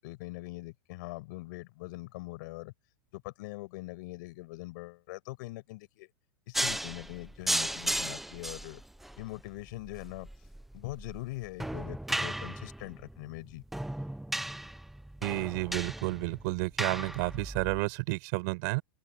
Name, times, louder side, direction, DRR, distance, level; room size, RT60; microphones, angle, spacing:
voice 1, 0.0-2.7 3.1-6.1 6.5-8.8 9.2-10.3 10.7-13.6, left 21 dB, 45° left, 6.3 m, -42 dB
sound 1, 6.5-17.8, right 1 dB, ahead, 0.7 m, -36 dB
voice 2, 15.2-18.8, right 27 dB, 40° right, 7.0 m, -31 dB
supercardioid pair, 175°, 14 cm